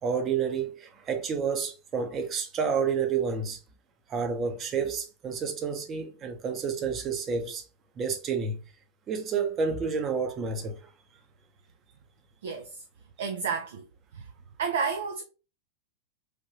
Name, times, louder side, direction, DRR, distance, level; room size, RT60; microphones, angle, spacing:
voice 1, 0.0-3.6 4.1-7.6 8.0-8.6 9.1-10.8, right 5 dB, 25° right, 0.7 m, -29 dB
voice 2, 12.4-12.8 13.2-13.9 14.1-14.3 14.6-15.2, right 5 dB, 60° right, 0.4 m, -31 dB
3.4 x 2.6 x 2.8 m
figure-of-eight pair, 90°, 0 cm